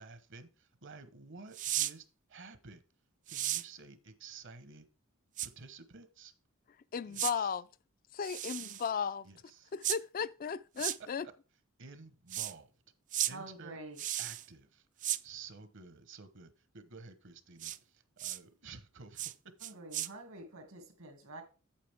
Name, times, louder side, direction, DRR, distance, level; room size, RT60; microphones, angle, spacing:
voice 1, 0.0-2.8 3.3-4.8 5.4-6.3 7.0-7.6 9.2-9.7 11.8-12.7 13.3-13.8 14.2-19.3, right 4 dB, 60° right, 1.0 m, -52 dB
sound 1, 1.5-1.9 3.3-3.6 5.4-5.5 7.1-7.3 8.2-8.9 9.8-10.0 10.8-11.0 12.3-12.5 13.1-13.3 14.0-14.5 15.0-15.2 17.6-17.8 18.2-18.4 19.2-19.3 19.6-20.1, right 13 dB, 35° right, 0.3 m, -34 dB
voice 2, 6.9-7.7 8.1-9.3 9.7-11.3, left 6 dB, 45° left, 0.4 m, -35 dB
voice 3, 13.3-14.0 19.6-21.4, right 2 dB, 85° right, 2.5 m, -47 dB
8.5 x 7.6 x 3.4 m
head